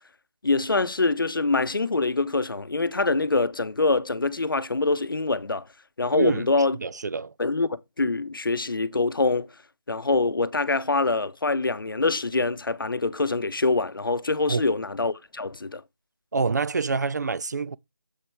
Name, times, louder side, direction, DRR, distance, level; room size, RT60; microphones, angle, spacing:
voice 1, 0.4-5.7 6.0-6.8 7.4-7.7 8.0-9.5 9.9-15.8, left 3 dB, 80° left, 0.7 m, -24 dB
voice 2, 6.1-6.4 6.8-7.3 14.5-14.6 16.3-17.8, right 4 dB, 55° right, 0.4 m, -26 dB
7.4 x 4.7 x 4.5 m
figure-of-eight pair, 160°, 11 cm